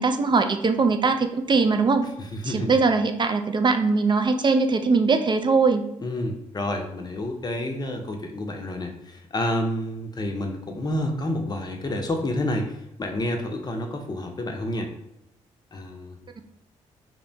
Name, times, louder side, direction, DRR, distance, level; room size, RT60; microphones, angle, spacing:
voice 1, 0.0-2.0 2.4-5.8, right 4 dB, 30° right, 7 dB, 0.3 m, -21 dB
voice 2, 2.2-2.8 6.0-14.9 15.7-16.2, left 1 dB, 25° left, 3 dB, 0.6 m, -29 dB
2.8 x 2.1 x 2.6 m, 0.84 s
hypercardioid pair, 45°, 15 cm